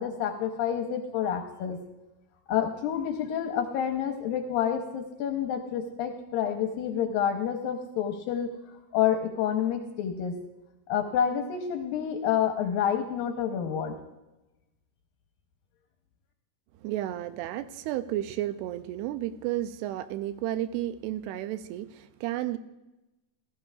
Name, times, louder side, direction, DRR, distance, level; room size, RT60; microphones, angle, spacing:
voice 1, 0.0-1.8 2.5-8.5 8.9-10.4 10.9-14.0, left 8 dB, 75° left, 4 dB, 2.3 m, -28 dB
voice 2, 16.8-22.6, right 13 dB, 85° right, 12 dB, 2.6 m, -32 dB
18.0 x 13.0 x 2.4 m, 1.0 s
omnidirectional pair, 4.7 m